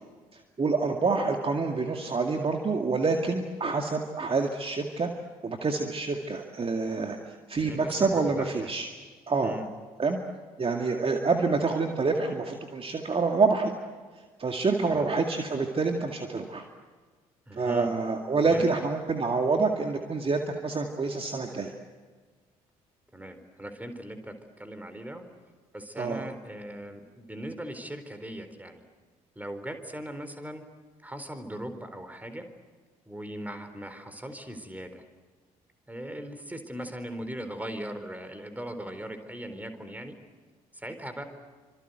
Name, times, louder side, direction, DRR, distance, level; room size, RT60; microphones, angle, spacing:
voice 1, 0.3-5.1 5.4-8.9 9.3-9.6 10.0-10.2 10.6-13.7 14.4-16.7 17.6-21.7 26.0-26.2, right 4 dB, 30° right, 4 dB, 2.2 m, -27 dB
voice 2, 7.6-8.8 9.4-9.7 14.9-15.1 17.5-17.9 18.4-18.6 23.1-25.2 25.7-28.8 29.4-30.6 31.0-32.5 33.1-35.0 35.9-40.2 40.7-41.2, right 1 dB, 10° right, 9 dB, 4.0 m, -39 dB
28.0 x 26.0 x 8.1 m, 1.5 s
figure-of-eight pair, 50°, 19 cm